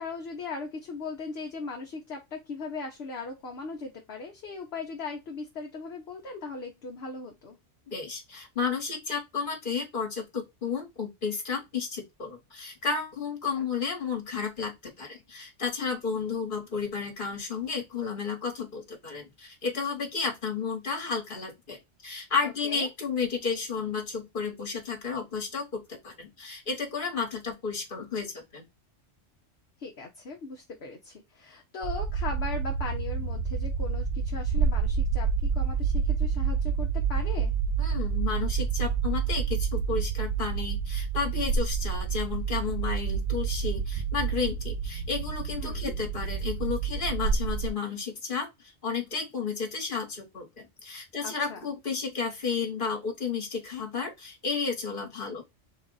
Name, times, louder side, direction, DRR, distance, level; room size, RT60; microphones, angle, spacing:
voice 1, 0.0-7.6 13.6-13.7 22.4-22.9 29.8-37.6 45.6-45.9 51.2-51.7, left 4 dB, 60° left, 1.0 m, -38 dB
voice 2, 7.9-28.6 37.8-48.5 48.8-55.4, left 5 dB, 45° left, 1.5 m, -32 dB
sound 1, 31.8-47.7, right 6 dB, 70° right, 0.4 m, -28 dB
4.0 x 2.4 x 3.8 m
omnidirectional pair, 1.3 m